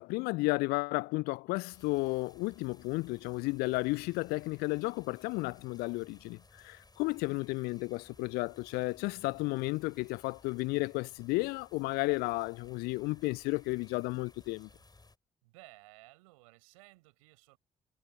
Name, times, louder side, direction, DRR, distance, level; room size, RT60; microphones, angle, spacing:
voice 1, 0.0-14.7, left 24 dB, 65° left, 0.4 m, -33 dB
sound 1, 1.7-15.2, left 3 dB, 20° left, 4.6 m, -60 dB
voice 2, 15.4-17.6, right 24 dB, 75° right, 4.7 m, -57 dB
figure-of-eight pair, 40°, 18 cm